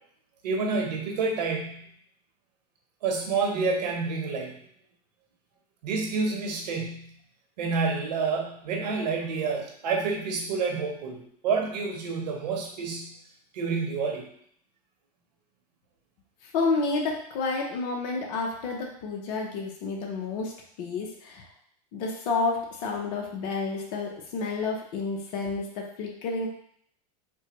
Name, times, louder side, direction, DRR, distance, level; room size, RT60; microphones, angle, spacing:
voice 1, 0.4-1.9 3.0-4.6 5.8-7.2 7.6-13.2 13.5-14.2, right 4 dB, 80° right, 1 dB, 1.0 m, -28 dB
voice 2, 16.4-21.5 21.9-26.5, left 3 dB, 60° left, 0 dB, 0.8 m, -30 dB
4.3 x 2.2 x 3.0 m, 0.65 s
hypercardioid pair, 115°, 21 cm